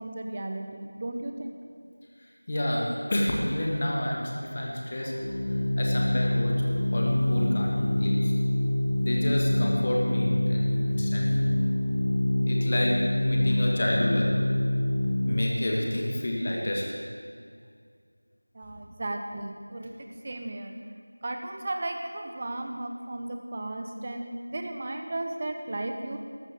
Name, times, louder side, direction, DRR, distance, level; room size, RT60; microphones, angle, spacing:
voice 1, 0.0-1.6 18.5-19.9 20.2-20.8 21.2-26.2, right 2 dB, 20° right, 4 dB, 1.0 m, -35 dB
voice 2, 2.2-8.3 9.0-11.5 12.4-14.5 15.3-17.0 18.7-18.8, left 1 dB, 25° left, -2 dB, 1.9 m, -30 dB
Organ, 5.1-15.8, left 1 dB, 50° left, 0.7 m, -26 dB
19.0 x 14.5 x 3.7 m, 2.1 s
figure-of-eight pair, 175°, 0 cm